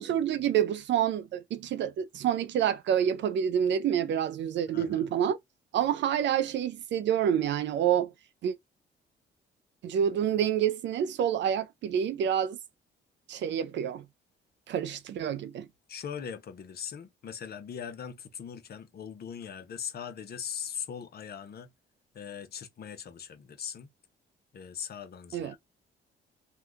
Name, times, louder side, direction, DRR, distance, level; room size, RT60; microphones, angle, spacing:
voice 1, 0.0-5.4 5.7-8.1 8.4-8.6 9.8-12.6 13.3-14.0 14.7-15.7 25.3-25.6, right 9 dB, 65° right, 0.5 m, -28 dB
voice 2, 4.7-5.1 15.9-21.7 22.1-23.9 24.5-25.6, left 8 dB, 55° left, 0.8 m, -40 dB
2.7 x 2.3 x 3.5 m
cardioid pair, 90°, 20 cm